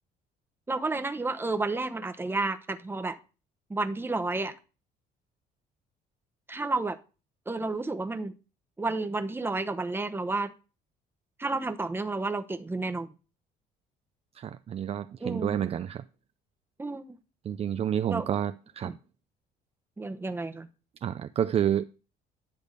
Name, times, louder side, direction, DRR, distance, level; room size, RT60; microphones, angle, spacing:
voice 1, 0.7-3.2 3.7-4.5 6.5-7.0 7.5-8.3 8.8-10.5 11.4-13.1 15.2-15.6 16.8-17.1 18.1-18.3 18.8-19.0 20.0-20.7, right 3 dB, 15° right, 0.9 m, -31 dB
voice 2, 14.3-16.0 17.4-18.9 21.0-21.8, right 9 dB, 35° right, 0.4 m, -29 dB
10.5 x 3.5 x 6.5 m
cardioid pair, 110°, 17 cm